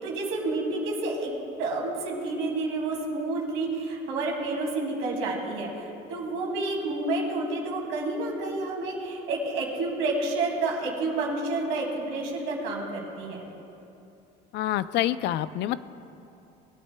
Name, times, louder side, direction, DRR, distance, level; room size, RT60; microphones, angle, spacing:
voice 1, 0.0-13.5, right 2 dB, 85° right, -1 dB, 2.2 m, -29 dB
voice 2, 14.5-15.8, left 13 dB, 65° left, 15 dB, 0.4 m, -27 dB
20.5 x 9.4 x 2.2 m, 2.8 s
cardioid pair, 130°, 20 cm